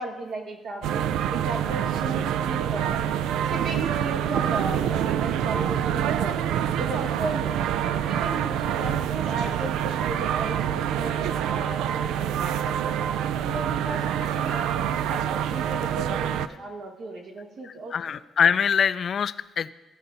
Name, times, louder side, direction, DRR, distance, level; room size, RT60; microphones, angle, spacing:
voice 1, 0.0-3.0 3.5-7.6 8.0-13.0 13.4-17.9, right 2 dB, 65° right, 1 dB, 1.8 m, -35 dB
sound 1, 0.8-16.5, right 10 dB, 90° right, 0.3 m, -26 dB
voice 2, 11.0-11.4 14.5-14.6 17.6-19.7, left 7 dB, 55° left, 15 dB, 0.3 m, -25 dB
15.5 x 5.4 x 4.0 m, 1.0 s
cardioid pair, 90°, 0 cm